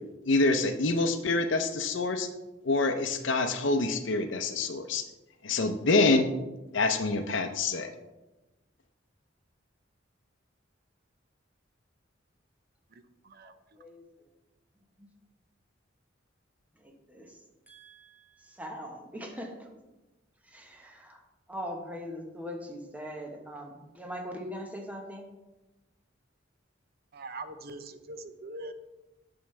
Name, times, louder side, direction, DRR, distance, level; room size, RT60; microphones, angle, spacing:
voice 1, 0.3-2.3 2.6-5.0 5.4-6.3 6.7-7.9, left 3 dB, 70° left, 7 dB, 0.7 m, -26 dB
voice 2, 16.8-17.4 17.7-19.7 20.4-21.2 21.5-25.3, equal, 10° right, 1 dB, 1.0 m, -41 dB
voice 3, 27.1-28.7, right 2 dB, 55° right, 10 dB, 0.7 m, -42 dB
9.2 x 7.1 x 3.2 m, 1.1 s
head